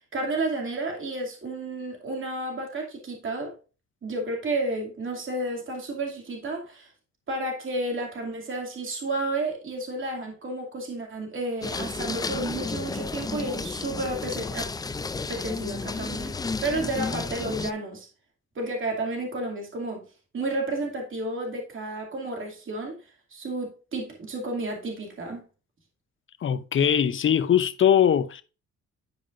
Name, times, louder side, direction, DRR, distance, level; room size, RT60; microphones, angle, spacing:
voice 1, 0.1-3.5 4.0-6.9 7.3-14.7 15.2-18.1 18.6-20.0 20.3-23.0 23.3-25.5, right 2 dB, 40° right, 2.4 m, -31 dB
sound 1, 11.6-17.7, left 4 dB, 15° left, 0.3 m, -32 dB
voice 2, 26.4-28.4, left 9 dB, 40° left, 0.7 m, -21 dB
10.5 x 5.0 x 2.5 m
cardioid pair, 90°, 30 cm